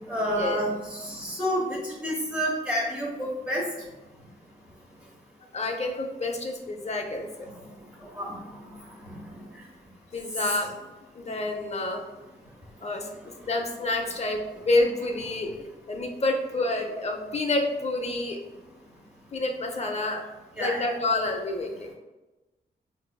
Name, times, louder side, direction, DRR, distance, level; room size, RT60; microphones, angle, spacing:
voice 1, 0.1-3.6 8.2-8.4 20.6-20.9, equal, 10° right, -7 dB, 0.9 m, -29 dB
voice 2, 5.5-7.3 10.1-10.7 11.1-12.1 12.8-15.5 15.9-18.4 19.3-20.2 20.6-21.9, left 2 dB, 35° left, 3 dB, 0.6 m, -28 dB
4.5 x 2.6 x 2.2 m, 1.1 s
cardioid pair, 70°, 18 cm